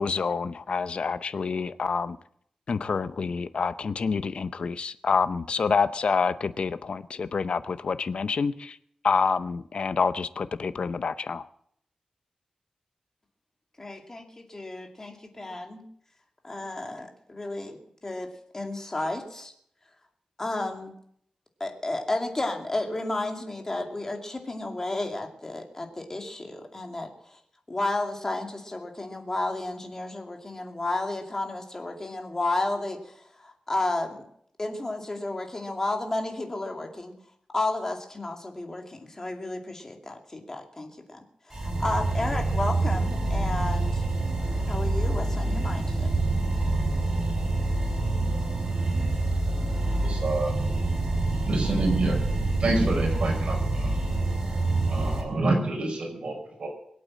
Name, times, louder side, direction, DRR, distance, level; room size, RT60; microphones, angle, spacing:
voice 1, 0.0-2.2 2.7-8.7 9.0-11.4, left 5 dB, 60° left, 13 dB, 0.7 m, -27 dB
voice 2, 13.8-15.8 16.4-19.5 20.4-20.9 21.6-27.4 27.7-34.2 34.6-37.1 37.5-41.2 41.5-44.0 44.7-46.1, left 2 dB, 25° left, 3 dB, 2.5 m, -32 dB
sound 1, 41.5-55.2, right 2 dB, 30° right, 4.2 m, -26 dB
voice 3, 50.0-50.5 51.4-52.2 52.6-54.0 54.9-56.7, right 2 dB, 60° right, 0 dB, 5.5 m, -27 dB
22.0 x 8.5 x 7.6 m, 0.68 s
wide cardioid pair, 125°, 2 cm